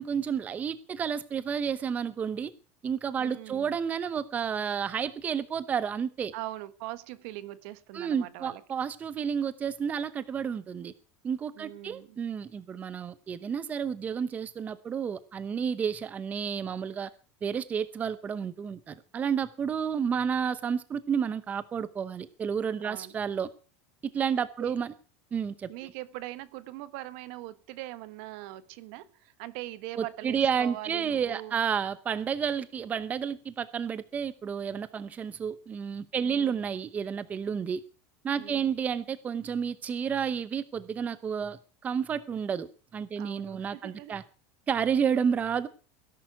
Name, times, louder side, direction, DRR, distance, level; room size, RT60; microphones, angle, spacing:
voice 1, 0.0-2.5 2.8-6.3 7.9-10.9 11.2-17.1 17.4-23.5 24.1-24.9 25.3-25.7 30.0-37.8 38.2-44.2 44.7-45.7, right 7 dB, 20° right, 0.8 m, -31 dB
voice 2, 3.2-3.8 6.3-8.6 11.5-12.2 22.8-23.2 24.6-24.8 25.7-31.6 36.1-36.6 38.4-38.8 43.2-44.2, right 16 dB, 60° right, 1.4 m, -42 dB
18.0 x 11.0 x 6.0 m
supercardioid pair, 150°, 7 cm